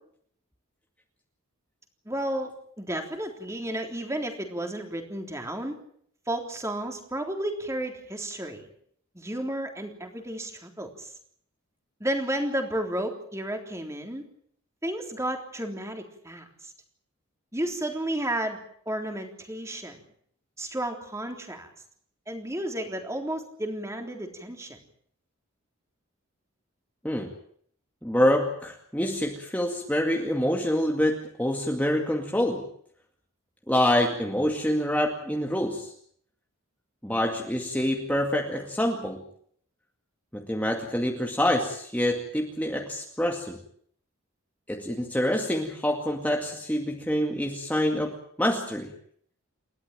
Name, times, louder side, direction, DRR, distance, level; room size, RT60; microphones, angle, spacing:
voice 1, 2.0-5.7 6.3-8.7 9.1-11.1 12.0-14.2 14.8-16.7 17.5-18.6 18.8-20.0 20.6-21.7 22.3-24.8, right 1 dB, 15° right, 3 dB, 3.5 m, -32 dB
voice 2, 28.0-32.6 33.7-35.9 37.0-39.2 40.3-43.6 44.7-48.9, left 1 dB, 5° left, 1 dB, 2.2 m, -26 dB
29.5 x 13.5 x 9.1 m, 0.65 s
head